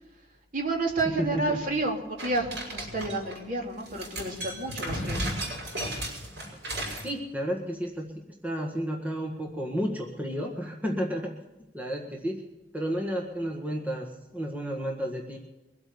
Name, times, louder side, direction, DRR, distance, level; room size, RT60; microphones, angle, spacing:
voice 1, 0.5-5.2, right 2 dB, 50° right, 0 dB, 3.3 m, -30 dB
voice 2, 1.0-1.6 6.7-8.1 8.4-11.3 11.7-12.4 12.7-15.4, equal, 10° right, 0 dB, 1.7 m, -32 dB
sound 1, 2.2-3.4 3.8-7.1, right 1 dB, 80° right, 6.4 m, -34 dB
23.0 x 8.4 x 7.0 m, 1.0 s
head